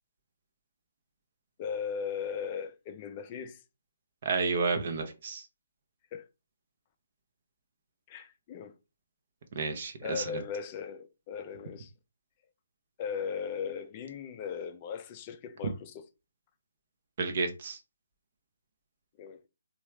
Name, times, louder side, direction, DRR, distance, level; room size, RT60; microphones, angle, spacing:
voice 1, 1.6-3.6 6.1-6.3 8.1-8.7 10.0-11.9 13.0-16.0 19.2-19.5, left 7 dB, 30° left, 0.4 m, -38 dB
voice 2, 4.2-5.5 9.5-10.4 17.2-17.8, right 4 dB, 45° right, 0.7 m, -31 dB
3.2 x 2.3 x 3.1 m
figure-of-eight pair, 150°, 0 cm